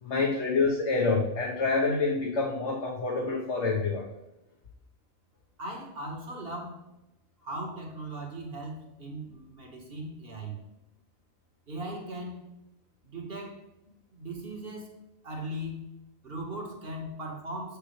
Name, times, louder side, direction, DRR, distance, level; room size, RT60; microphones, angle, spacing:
voice 1, 0.0-4.0, left 3 dB, 60° left, -3 dB, 1.4 m, -27 dB
voice 2, 5.6-6.8 7.4-10.6 11.7-12.4 13.0-13.6 14.1-14.9 15.2-15.9 16.2-17.8, right 1 dB, 45° right, 1 dB, 1.7 m, -38 dB
7.6 x 6.7 x 3.2 m, 0.92 s
omnidirectional pair, 1.4 m